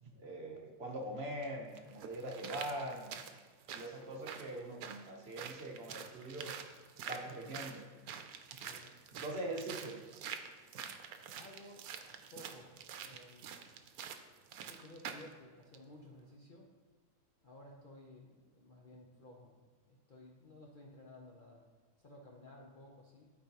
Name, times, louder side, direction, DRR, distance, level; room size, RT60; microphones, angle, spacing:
voice 1, 0.0-3.2 3.7-6.5 7.1-7.9 9.2-10.0, right 1 dB, 50° right, 0 dB, 1.1 m, -42 dB
sound 1, 0.9-1.0 1.8-15.3 15.7-15.8, right 8 dB, 80° right, 1.1 m, -47 dB
voice 2, 8.6-8.9 11.3-12.8 13.0-13.6 14.0-14.1 14.6-16.7 17.4-19.5 19.9-21.6 22.0-23.3, left 1 dB, 45° left, -1 dB, 0.7 m, -56 dB
12.5 x 4.5 x 2.9 m, 1.4 s
omnidirectional pair, 1.5 m